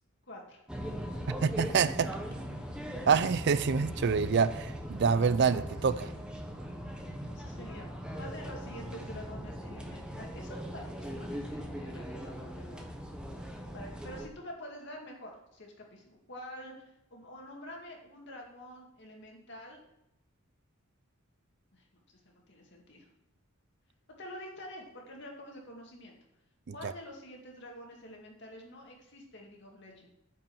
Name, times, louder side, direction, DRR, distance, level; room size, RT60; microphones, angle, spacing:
voice 1, 0.3-0.6 7.0-7.9 8.2-12.9 13.7-19.8 21.7-23.1 24.2-26.1 26.7-30.2, equal, 55° left, 0 dB, 2.2 m, -47 dB
sound 1, 0.7-14.3, equal, 5° right, 1.0 m, -40 dB
voice 2, 1.3-2.1 3.1-6.1 26.8-26.9, right 6 dB, 55° right, 15 dB, 0.4 m, -27 dB
9.4 x 5.5 x 7.1 m, 0.84 s
head